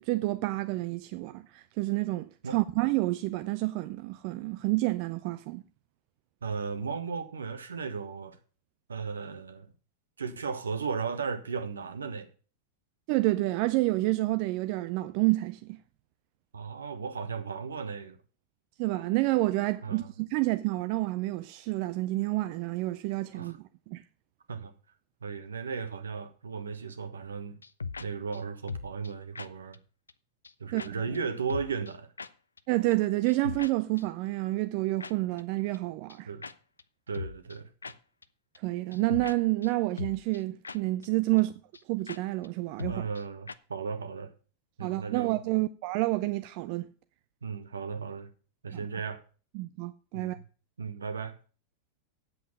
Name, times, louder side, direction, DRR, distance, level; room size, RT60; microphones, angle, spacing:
voice 1, 0.0-5.6 13.1-15.8 18.8-23.6 23.9-24.0 30.7-30.8 32.7-36.3 38.6-41.5 41.9-42.9 44.8-46.9 49.5-50.4, right 20 dB, 45° right, 0.5 m, -29 dB
voice 2, 6.4-8.4 8.9-9.7 10.2-12.3 16.5-18.2 19.8-20.1 23.3-23.6 24.5-24.7 25.2-27.6 28.0-29.8 30.6-32.1 36.3-36.4 37.1-37.7 41.3-41.4 42.8-44.3 44.8-45.4 47.4-48.3 48.6-49.2 50.1-50.4 50.8-51.4, right 5 dB, 70° right, 1.2 m, -35 dB
sound 1, 27.6-28.1 28.3-28.4 28.7-29.1 29.4-29.5 29.7-29.8 30.1-30.2 30.4-30.5 30.8-30.9 31.1-31.2 31.5-31.9 32.2-32.3 32.6-32.7 32.9-33.0 33.3-33.7 34.0-34.1 35.0-35.1 35.4-35.5 35.7-35.8 36.1-36.2 36.4-36.5 36.8-36.9 37.1-37.6 37.8-37.9 38.2-38.3 38.6-38.7 38.9-39.4 39.6-39.7 40.0-40.4 40.6-40.8 41.0-41.1 41.4-41.5 41.7-41.8 42.1-42.2 42.4-42.5 42.8-43.2 43.5-43.6, left 4 dB, 75° left, 0.5 m, -38 dB
8.3 x 7.8 x 7.1 m
figure-of-eight pair, 90°, 0 cm